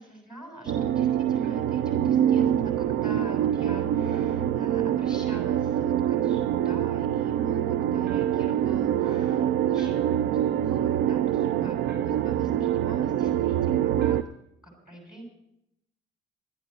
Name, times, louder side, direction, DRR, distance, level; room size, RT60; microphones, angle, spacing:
voice 1, 0.0-14.2 14.6-15.2, right 1 dB, 5° right, 1 dB, 6.4 m, -46 dB
sound 1, 0.7-14.2, right 10 dB, 85° right, 0.5 m, -25 dB
sound 2, 1.4-1.8 3.2-3.5 5.3-5.7 8.0-8.6 9.8-10.4 11.9-12.4 14.0-14.5, right 6 dB, 55° right, 2.5 m, -52 dB
12.5 x 8.9 x 8.9 m, 0.80 s
cardioid pair, 90°, 20 cm